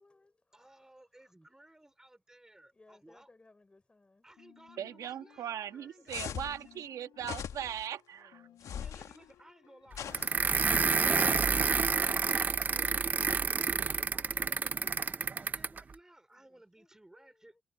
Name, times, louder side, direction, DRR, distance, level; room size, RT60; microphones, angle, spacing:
voice 1, 0.0-1.6 2.7-4.3 5.7-6.5 8.1-8.7 9.2-9.5 16.3-17.6, left 2 dB, 15° left, 6.1 m, -65 dB
voice 2, 0.5-3.3 4.2-6.8 8.8-11.7 12.0-17.5, right 1 dB, 10° right, 2.8 m, -58 dB
sound 1, 4.4-12.0, left 12 dB, 80° left, 6.9 m, -61 dB
voice 3, 4.8-8.4, right 10 dB, 65° right, 1.4 m, -39 dB
sound 2, 6.1-6.6 7.2-7.9 8.6-9.2 9.9-10.7, left 8 dB, 60° left, 1.5 m, -41 dB
sound 3, 10.1-15.8, right 5 dB, 30° right, 0.6 m, -29 dB
cardioid pair, 115°, 6 cm